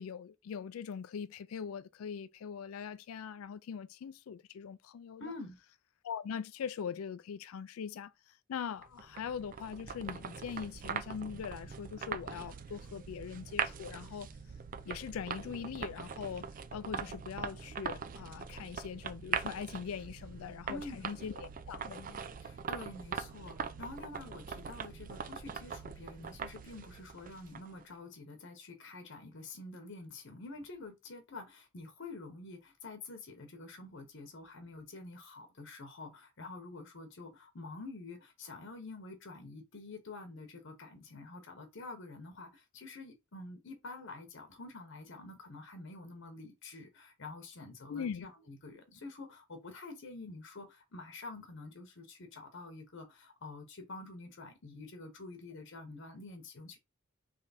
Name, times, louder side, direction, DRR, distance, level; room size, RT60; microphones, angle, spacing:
voice 1, 0.0-5.2 6.0-14.3 14.9-22.2 47.9-48.3, left 7 dB, 85° left, 0.4 m, -42 dB
voice 2, 5.2-5.6 20.7-21.1 22.4-56.8, left 3 dB, 60° left, 0.9 m, -48 dB
sound 1, 8.8-27.8, right 6 dB, 40° right, 0.4 m, -42 dB
3.4 x 3.1 x 4.1 m
head